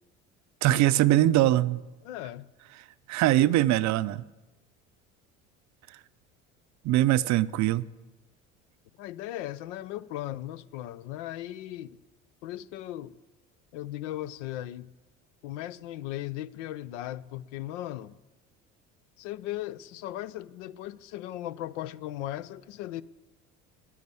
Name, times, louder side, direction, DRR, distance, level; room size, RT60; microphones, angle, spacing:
voice 1, 0.6-1.8 3.1-4.2 6.8-7.8, right 14 dB, 50° right, 0.5 m, -22 dB
voice 2, 2.0-2.5 9.0-12.0 12.4-13.2 13.7-14.9 15.4-18.1 19.2-23.0, left 14 dB, 75° left, 0.6 m, -37 dB
9.9 x 9.5 x 8.3 m
hypercardioid pair, 70°, 37 cm